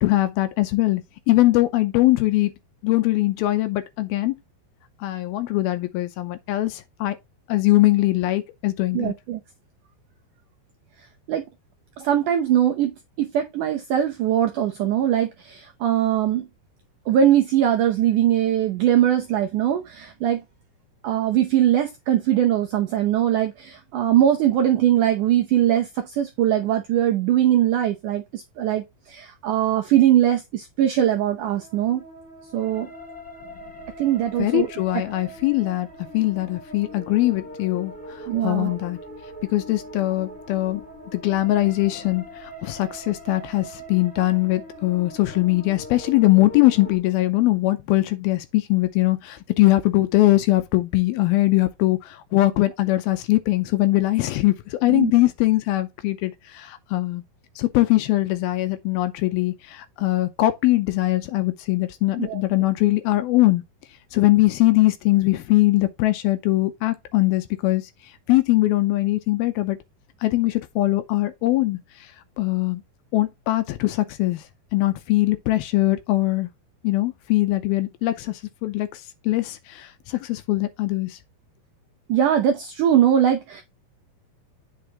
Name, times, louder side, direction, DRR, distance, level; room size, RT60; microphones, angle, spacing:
voice 1, 0.0-2.5 2.8-4.3 5.0-7.2 7.5-9.1 34.4-35.9 36.1-39.0 39.5-40.8 41.1-57.2 57.6-63.6 64.1-67.9 68.3-69.8 70.2-72.1 72.4-72.8 73.1-74.4 74.7-76.5 76.8-81.2, left 18 dB, 80° left, 2.4 m, -21 dB
voice 2, 8.9-9.4 11.3-11.4 12.0-16.5 17.1-20.4 21.0-32.0 32.5-32.9 34.0-34.7 34.9-35.0 38.3-38.8 54.9-55.1 62.2-62.4 82.1-83.6, right 11 dB, 80° right, 1.8 m, -21 dB
sound 1, 31.4-47.0, equal, 5° left, 1.3 m, -41 dB
8.4 x 5.9 x 2.9 m
omnidirectional pair, 4.7 m